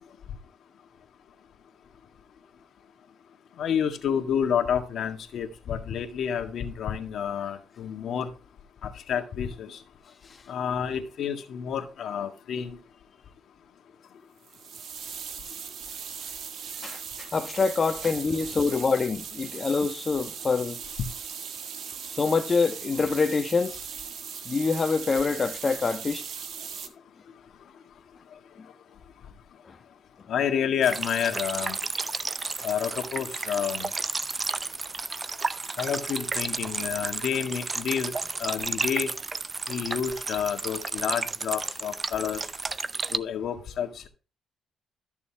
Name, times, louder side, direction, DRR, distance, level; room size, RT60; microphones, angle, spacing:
voice 1, 3.6-8.3 8.8-9.8 10.5-12.8 30.3-31.8 32.6-33.9 35.8-38.1 38.4-39.1 39.7-42.4 43.1-44.1, left 8 dB, 65° left, 1.8 m, -29 dB
sound 1, 14.4-26.9, right 7 dB, 70° right, 1.5 m, -39 dB
voice 2, 16.8-20.8 22.2-23.8 24.4-26.2, left 4 dB, 35° left, 1.2 m, -25 dB
sound 2, 30.8-43.2, right 3 dB, 30° right, 0.6 m, -32 dB
13.5 x 6.9 x 3.6 m
cardioid pair, 90°, 0 cm